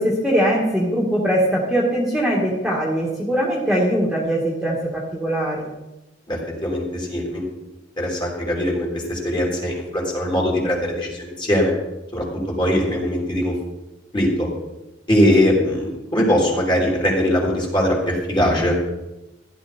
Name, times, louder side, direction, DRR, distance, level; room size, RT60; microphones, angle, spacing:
voice 1, 0.0-5.7, equal, ahead, -4 dB, 2.1 m, -21 dB
voice 2, 6.3-7.4 8.0-11.7 12.1-13.5 14.1-14.5 15.1-18.7, equal, 25° left, -2 dB, 3.8 m, -21 dB
15.5 x 11.5 x 4.4 m, 0.97 s
head